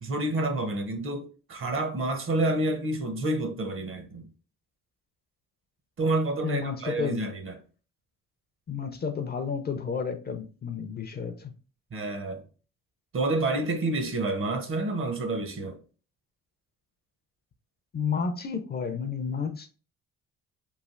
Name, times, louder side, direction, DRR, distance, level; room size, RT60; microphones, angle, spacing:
voice 1, 0.0-4.3 6.0-7.6 11.9-12.4 13.1-15.8, right 2 dB, 45° right, 0.7 m, -29 dB
voice 2, 6.4-7.2 8.7-11.5 17.9-19.7, left 6 dB, 35° left, 0.4 m, -31 dB
3.2 x 2.4 x 2.4 m
cardioid pair, 90°, 30 cm